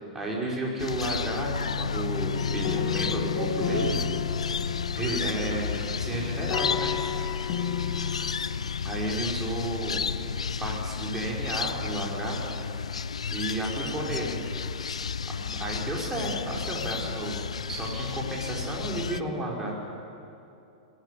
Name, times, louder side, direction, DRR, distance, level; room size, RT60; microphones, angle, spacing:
voice 1, 0.1-4.0 4.9-7.0 8.8-10.0 10.6-12.5 13.3-14.4 15.3-19.7, right 1 dB, 15° right, -3 dB, 5.2 m, -32 dB
sound 1, 0.8-19.2, left 6 dB, 70° left, 0.5 m, -32 dB
sound 2, 1.6-6.2, right 2 dB, 70° right, 2.3 m, -41 dB
sound 3, 2.3-9.0, left 10 dB, 40° left, 1.3 m, -34 dB
20.5 x 15.5 x 9.8 m, 2.7 s
figure-of-eight pair, 100°, 3 cm